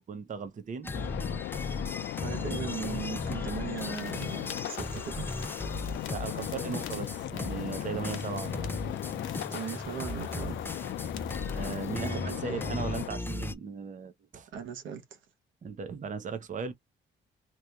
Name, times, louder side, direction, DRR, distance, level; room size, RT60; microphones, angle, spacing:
voice 1, 0.1-0.9 6.1-8.7 9.1-9.2 11.0-11.1 11.5-14.5 15.6-16.7, right 5 dB, 40° right, 0.8 m, -37 dB
sound 1, 0.8-13.5, left 2 dB, 10° left, 0.5 m, -38 dB
sound 2, 0.9-13.1, left 13 dB, 65° left, 0.4 m, -37 dB
voice 2, 2.2-5.3 9.5-10.7 11.9-12.6 14.5-15.2, right 8 dB, 75° right, 1.0 m, -38 dB
sound 3, 3.8-12.1, left 8 dB, 85° left, 0.9 m, -50 dB
3.0 x 2.5 x 3.4 m
cardioid pair, 90°, 20 cm